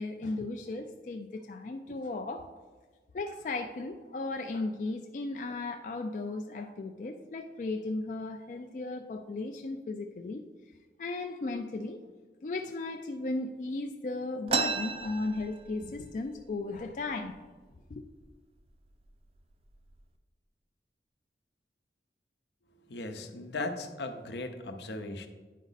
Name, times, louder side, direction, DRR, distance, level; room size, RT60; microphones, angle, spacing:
voice 1, 0.0-2.5 3.1-10.4 11.0-12.0 12.4-17.3 17.9-18.0, left 2 dB, 45° left, 4 dB, 0.3 m, -36 dB
sound 1, 14.5-16.1 16.4-16.5 16.8-17.4 18.0-18.2 18.9-19.0 19.5-20.0, right 4 dB, 35° right, 0.4 m, -33 dB
voice 2, 22.9-25.3, left 2 dB, 80° left, 7 dB, 0.7 m, -37 dB
9.2 x 5.0 x 4.0 m, 1.4 s
head